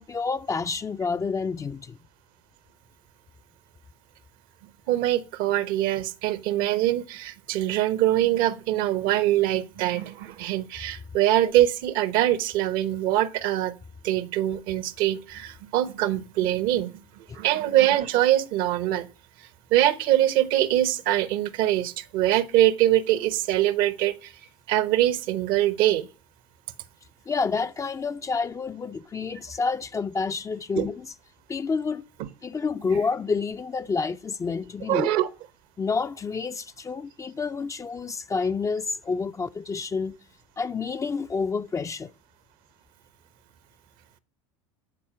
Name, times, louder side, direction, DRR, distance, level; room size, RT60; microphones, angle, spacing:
voice 1, 0.0-2.0 17.3-17.4 27.3-31.1 31.5-32.1 32.4-35.1 35.8-40.2 40.6-42.1, left 4 dB, 20° left, 0.5 m, -29 dB
voice 2, 4.9-13.8 14.0-19.1 19.4-24.3 24.7-26.1 30.8-30.9 32.2-32.3 34.9-35.3, right 13 dB, 60° right, 0.9 m, -23 dB
12.5 x 4.3 x 7.5 m
hypercardioid pair, 80°, 16 cm